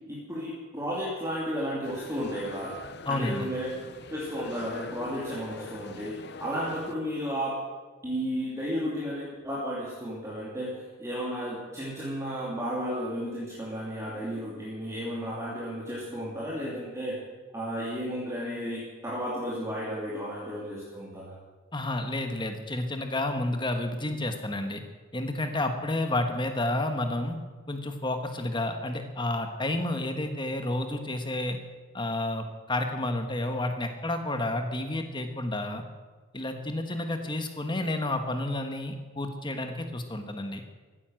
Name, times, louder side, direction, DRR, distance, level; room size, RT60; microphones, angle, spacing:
voice 1, 0.1-2.7 3.1-3.7 4.1-7.5 8.0-10.7 11.0-17.2 17.5-21.3, equal, 15° right, -7 dB, 2.8 m, -33 dB
sound 1, 1.8-6.9, left 4 dB, 50° left, 0.8 m, -44 dB
voice 2, 3.1-3.5 21.7-24.8 25.1-27.3 27.7-31.6 31.9-35.8 36.3-40.6, left 1 dB, 20° left, 6 dB, 1.4 m, -30 dB
15.0 x 9.9 x 7.8 m, 1.3 s
head